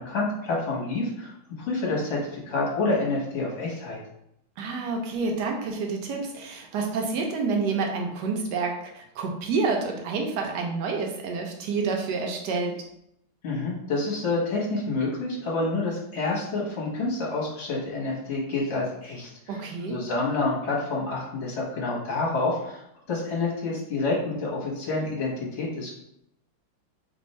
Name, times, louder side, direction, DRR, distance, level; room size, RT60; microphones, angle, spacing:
voice 1, 0.0-1.3 1.6-4.0 13.4-22.8 23.1-25.9, left 3 dB, 40° left, -4 dB, 1.4 m, -28 dB
voice 2, 4.6-12.7 19.5-20.0, right 4 dB, 65° right, 2 dB, 1.2 m, -28 dB
3.5 x 2.6 x 4.2 m, 0.77 s
omnidirectional pair, 2.2 m